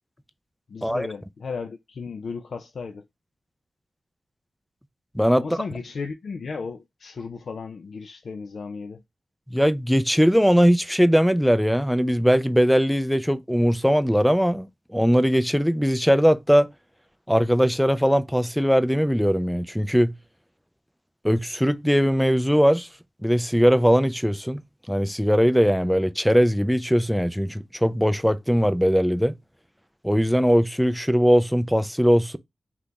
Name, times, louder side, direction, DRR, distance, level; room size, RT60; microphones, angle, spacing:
voice 1, 0.7-3.0 5.4-9.0, left 5 dB, 70° left, 0.4 m, -35 dB
voice 2, 9.5-16.7 17.3-20.1 21.2-22.9 23.2-24.6 24.9-29.4 30.0-32.4, equal, ahead, 0.4 m, -20 dB
2.8 x 2.4 x 3.5 m
cardioid pair, 60°, 0 cm